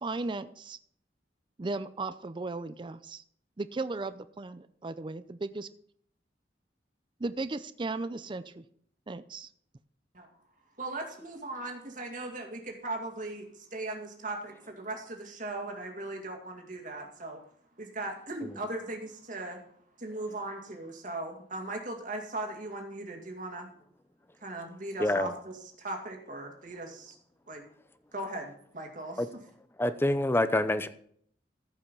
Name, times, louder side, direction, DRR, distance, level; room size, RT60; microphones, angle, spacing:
voice 1, 0.0-0.8 1.6-3.2 3.6-5.7 7.2-8.6 9.1-9.5, right 3 dB, 30° right, 13 dB, 0.5 m, -36 dB
voice 2, 10.8-17.4 17.8-19.6 20.0-23.7 24.4-27.1 27.5-27.6 28.1-29.2, right 2 dB, 50° right, 3 dB, 2.2 m, -38 dB
voice 3, 25.0-25.3 29.2-29.3 29.8-30.9, left 1 dB, 15° left, 12 dB, 0.6 m, -26 dB
14.5 x 5.6 x 5.4 m, 0.63 s
head